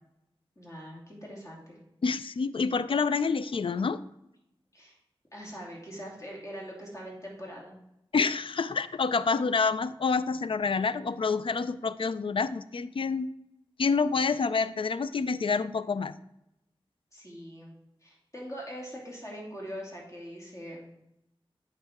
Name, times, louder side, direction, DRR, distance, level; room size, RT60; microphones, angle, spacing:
voice 1, 0.6-1.8 4.7-5.0 5.3-7.7 17.1-17.7 18.0-20.9, equal, 35° left, -3 dB, 2.9 m, -42 dB
voice 2, 2.0-4.0 8.1-13.3 13.8-16.1, left 4 dB, 65° left, 14 dB, 0.4 m, -28 dB
8.8 x 5.5 x 3.6 m, 0.84 s
wide cardioid pair, 60°, 10 cm